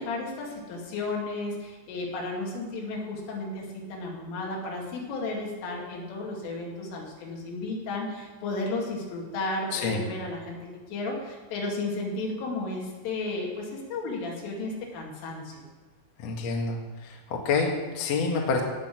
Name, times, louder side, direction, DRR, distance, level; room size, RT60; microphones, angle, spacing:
voice 1, 0.0-15.6, left 2 dB, 80° left, -2 dB, 4.9 m, -33 dB
voice 2, 16.2-18.6, left 4 dB, 55° left, 0 dB, 2.0 m, -28 dB
17.0 x 6.5 x 7.7 m, 1.3 s
omnidirectional pair, 5.7 m